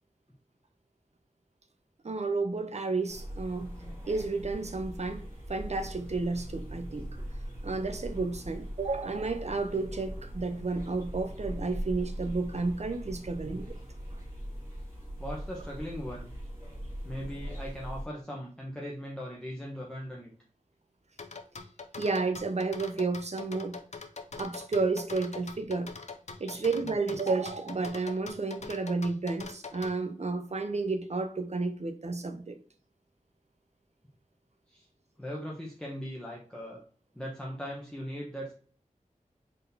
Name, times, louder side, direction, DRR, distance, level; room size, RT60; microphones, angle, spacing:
voice 1, 2.0-3.7 4.1-5.2 5.5-7.1 7.6-13.8 14.1-14.2 22.0-23.8 24.4-25.9 26.4-32.6, right 3 dB, 55° right, 0.6 m, -31 dB
sound 1, 3.1-18.1, equal, 20° right, 2.0 m, -41 dB
voice 2, 15.2-16.3 17.0-20.3 26.4-26.9 34.7-34.9 35.2-36.8 37.1-38.5, equal, 5° left, 0.9 m, -39 dB
sound 2, 21.2-29.9, left 4 dB, 55° left, 0.6 m, -42 dB
4.1 x 3.7 x 2.7 m
wide cardioid pair, 60°, 14 cm